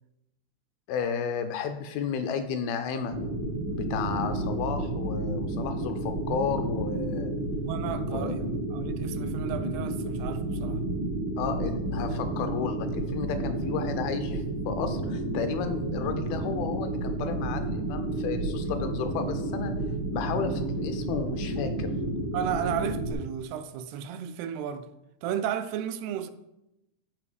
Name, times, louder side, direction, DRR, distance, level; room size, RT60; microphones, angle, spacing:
voice 1, 0.9-3.2 3.7-7.3 8.0-8.3 11.4-19.7 20.1-21.9, left 7 dB, 80° left, 2.3 m, -33 dB
sound 1, 3.1-23.1, right 2 dB, 65° right, 1.3 m, -31 dB
voice 2, 7.7-10.8 22.3-24.9 25.2-26.3, right 9 dB, 85° right, 2.5 m, -33 dB
12.5 x 4.6 x 5.0 m
omnidirectional pair, 4.7 m